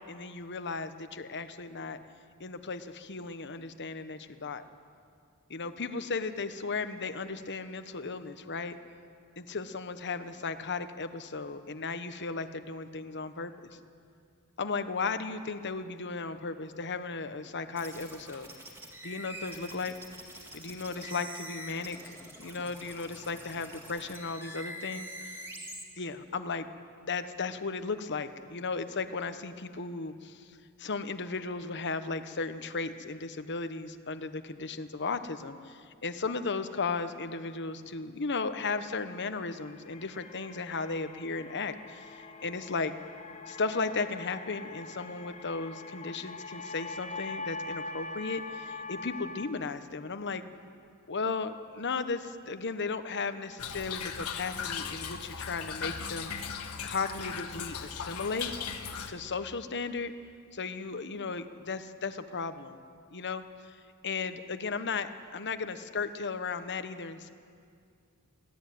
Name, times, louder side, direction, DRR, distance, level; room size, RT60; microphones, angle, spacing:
voice 1, 0.0-2.0 2.4-4.6 5.5-8.8 9.4-13.5 14.6-18.5 19.0-19.9 20.5-25.4 26.0-26.7 27.0-42.9 43.5-50.4 51.1-56.3 56.8-58.5 59.1-60.1 60.5-62.8 63.1-63.8 64.0-67.3, left 4 dB, 55° left, 10 dB, 1.1 m, -35 dB
sound 1, 17.8-25.8, equal, 10° right, 3.2 m, -45 dB
sound 2, 39.3-49.5, left 3 dB, 30° left, 1.2 m, -43 dB
Toilet flush / Trickle dribble, 53.6-59.1, left 6 dB, 80° left, 1.6 m, -38 dB
24.0 x 17.0 x 9.4 m, 2.3 s
head